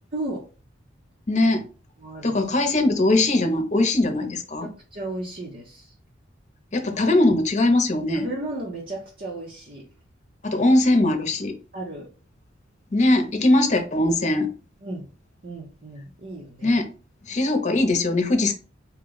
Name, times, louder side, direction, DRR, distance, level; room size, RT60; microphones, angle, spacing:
voice 1, 0.1-0.4 2.0-2.4 4.6-5.9 8.1-9.8 11.7-12.1 14.8-15.0 15.4-16.8, right 2 dB, 45° right, 1.0 m, -34 dB
voice 2, 1.3-1.7 2.2-4.7 6.7-8.3 10.4-11.6 12.9-14.5 16.6-16.9 17.3-18.5, left 2 dB, 35° left, 0.9 m, -20 dB
4.5 x 2.4 x 3.9 m
head